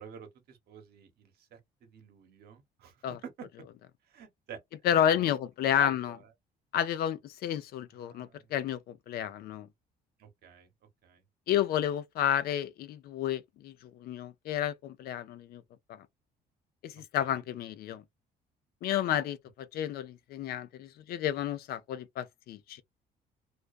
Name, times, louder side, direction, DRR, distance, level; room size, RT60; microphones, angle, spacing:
voice 1, 0.0-3.5 4.1-4.6 5.1-5.4 5.7-6.3 8.0-8.5 10.2-10.7 11.0-11.2 16.9-17.5, right 8 dB, 70° right, 0.9 m, -49 dB
voice 2, 4.8-6.1 6.7-9.7 11.5-15.6 16.8-18.0 18.8-22.8, left 10 dB, 65° left, 0.4 m, -31 dB
2.3 x 2.2 x 2.3 m
cardioid pair, 110°, 17 cm